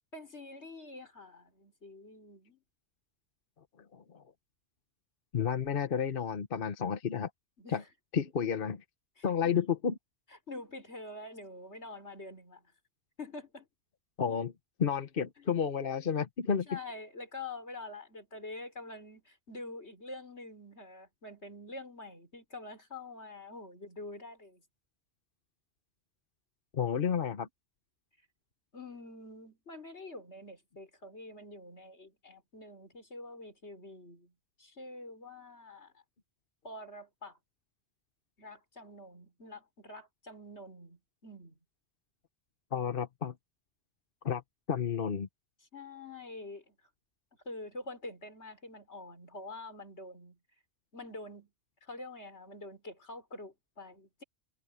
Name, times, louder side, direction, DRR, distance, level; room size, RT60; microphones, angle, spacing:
voice 1, 0.1-2.6 7.6-7.9 9.2-9.5 10.5-12.7 13.2-13.7 15.4-15.5 16.7-24.6 28.7-34.3 34.6-36.0 36.6-37.4 38.4-41.6 45.7-46.8 47.5-50.4 50.9-51.5 51.8-54.2, left 2 dB, 90° left, 5.6 m, -46 dB
voice 2, 3.9-4.2 5.3-7.3 7.7-7.8 8.1-8.8 9.2-9.9 14.2-14.5 14.8-16.7 26.7-27.5 42.7-43.3 44.2-44.4 44.7-45.3, left 7 dB, 55° left, 1.2 m, -31 dB
omnidirectional pair, 1.1 m